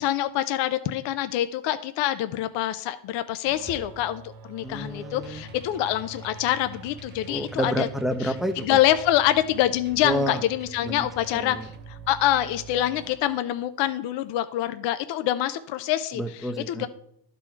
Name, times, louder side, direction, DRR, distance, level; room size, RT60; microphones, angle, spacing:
voice 1, 0.0-7.9 8.2-8.3 8.6-11.6 11.9-16.2 16.7-16.9, left 13 dB, 75° left, 11 dB, 0.6 m, -25 dB
sound 1, 3.4-13.7, right 4 dB, 70° right, 1.1 m, -45 dB
voice 2, 4.6-5.4 7.3-8.8 10.0-10.4 10.8-11.1 11.3-11.7 16.1-16.9, equal, ahead, 7 dB, 0.6 m, -29 dB
sound 2, 5.1-11.8, equal, 25° right, 1.0 m, -50 dB
12.0 x 4.2 x 4.4 m, 0.73 s
cardioid pair, 105°, 44 cm